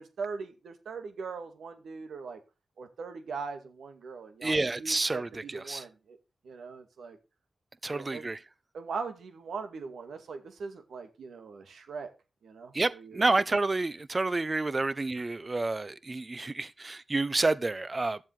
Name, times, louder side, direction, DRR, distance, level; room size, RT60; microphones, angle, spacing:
voice 1, 0.0-2.4 2.8-6.2 6.4-7.2 7.9-8.3 8.7-12.1 12.4-13.2, right 5 dB, 80° right, 2.3 m, -40 dB
voice 2, 4.4-5.8 7.8-8.4 12.7-18.2, right 3 dB, 35° right, 1.0 m, -29 dB
12.5 x 7.4 x 5.0 m
supercardioid pair, 45°, 0 cm